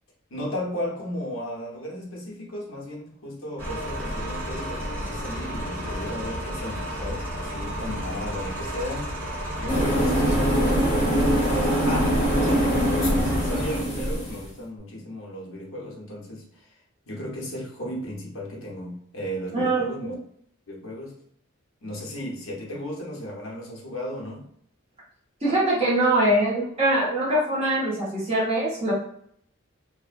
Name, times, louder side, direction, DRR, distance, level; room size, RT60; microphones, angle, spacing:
voice 1, 0.3-9.1 9.6-16.8 17.1-20.2 20.7-21.1 21.8-24.4 26.4-26.7, equal, 75° left, -2 dB, 0.8 m, -35 dB
sound 1, 3.6-13.8, equal, 10° right, 1.1 m, -32 dB
sound 2, 9.7-14.5, equal, 30° left, 0.8 m, -23 dB
voice 2, 19.5-19.9 25.4-28.9, right 1 dB, 30° right, -6 dB, 0.7 m, -23 dB
2.7 x 2.0 x 2.4 m, 0.67 s
head